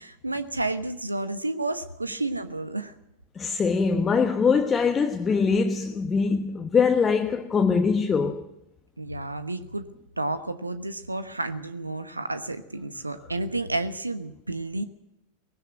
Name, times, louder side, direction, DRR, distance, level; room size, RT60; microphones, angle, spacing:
voice 1, 0.0-2.9 9.0-9.8 10.2-14.8, right 2 dB, 80° right, 1.1 m, -31 dB
voice 2, 3.4-8.4, left 5 dB, 20° left, 1.2 m, -23 dB
19.5 x 17.0 x 7.9 m
figure-of-eight pair, 90°, 0 cm